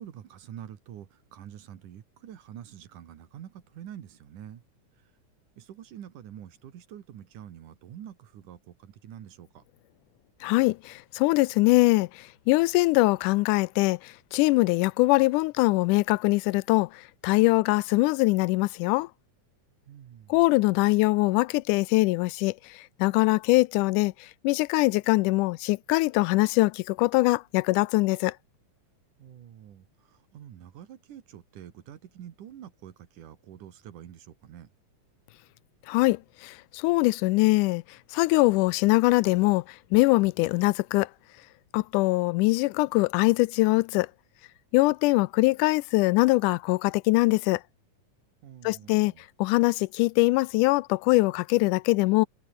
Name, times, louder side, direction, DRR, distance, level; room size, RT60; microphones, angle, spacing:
voice 1, 0.0-4.6 5.6-9.6 19.9-20.5 29.2-34.7 48.4-49.2, right 10 dB, 80° right, 3.3 m, -46 dB
voice 2, 10.4-12.1 12.5-14.0 14.3-16.9 17.2-19.1 20.3-22.5 23.0-24.1 24.4-28.3 35.9-37.8 38.1-39.6 39.9-41.1 41.7-44.1 44.7-47.6 48.6-49.1 49.4-52.3, left 22 dB, 90° left, 2.1 m, -22 dB
omnidirectional pair, 3.5 m